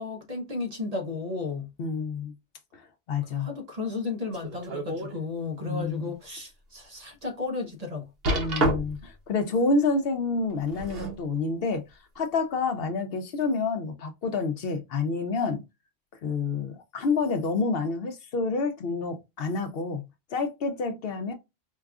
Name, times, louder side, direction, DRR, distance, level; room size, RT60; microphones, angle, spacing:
voice 1, 0.0-1.7 3.3-8.1, left 3 dB, 40° right, 0.8 m, -33 dB
voice 2, 1.8-2.3 2.7-2.8 3.1-3.5 5.7-6.1 8.3-11.8 12.2-15.6 16.2-20.0 20.3-21.3, left 4 dB, 65° left, 0.8 m, -28 dB
sound 1, 4.3-5.2 5.7-5.8 6.4-6.5 8.2-9.1 10.5-11.2 12.2-12.3, right 1 dB, 65° right, 1.2 m, -29 dB
4.6 x 2.3 x 2.3 m
omnidirectional pair, 1.1 m